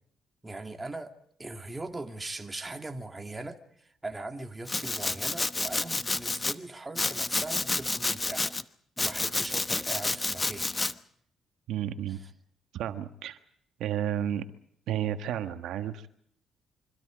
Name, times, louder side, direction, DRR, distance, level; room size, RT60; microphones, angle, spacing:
voice 1, 0.4-1.1 1.4-8.5 9.0-10.9 12.1-12.3, right 2 dB, 20° right, 2.3 m, -40 dB
Domestic sounds home sounds, 4.7-6.6 7.0-8.6 9.0-10.9, left 2 dB, 20° left, 1.0 m, -30 dB
voice 2, 11.7-12.2 12.7-13.4 13.8-14.4 14.9-16.1, right 10 dB, 80° right, 1.4 m, -32 dB
26.0 x 24.5 x 5.1 m
cardioid pair, 90°, 0 cm